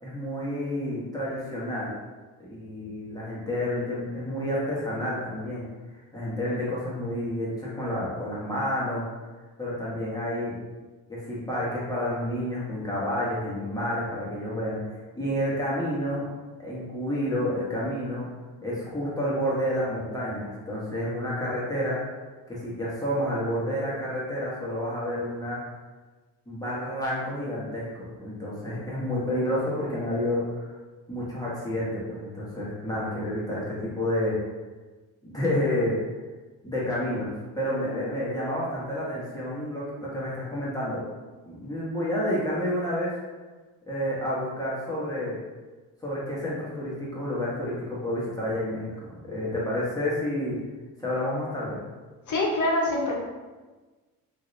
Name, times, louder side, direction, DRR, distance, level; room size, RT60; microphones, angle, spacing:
voice 1, 0.0-1.9 2.4-5.7 5.9-9.1 9.6-10.5 11.1-16.3 16.6-18.3 18.6-22.0 22.5-25.6 26.5-30.7 31.1-34.4 35.2-36.0 36.6-41.0 41.4-43.1 43.9-45.4 46.0-50.6 51.0-51.8, left 1 dB, 10° left, -7 dB, 1.3 m, -29 dB
voice 2, 52.3-53.1, left 1 dB, 45° left, -2 dB, 1.0 m, -24 dB
2.7 x 2.7 x 3.2 m, 1.3 s
supercardioid pair, 70°, 41 cm